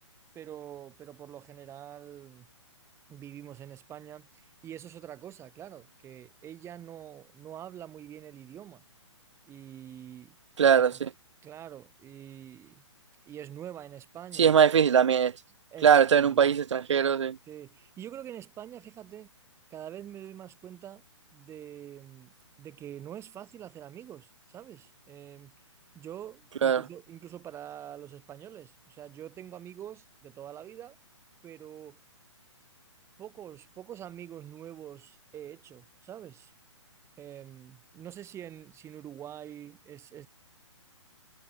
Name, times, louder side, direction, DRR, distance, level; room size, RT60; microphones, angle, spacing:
voice 1, 0.3-2.5 3.1-8.8 9.5-10.3 10.6-11.0 11.4-12.8 13.2-14.6 15.7-16.5 17.5-19.3 19.7-21.0 21.3-22.3 22.6-25.5 25.9-31.0 31.4-32.0 33.2-36.5 37.2-40.3, right 10 dB, 15° right, 2.4 m, -45 dB
voice 2, 10.6-11.1 14.4-15.3 15.8-17.4 26.6-26.8, right 8 dB, 70° right, 0.7 m, -21 dB
figure-of-eight pair, 130°, 16 cm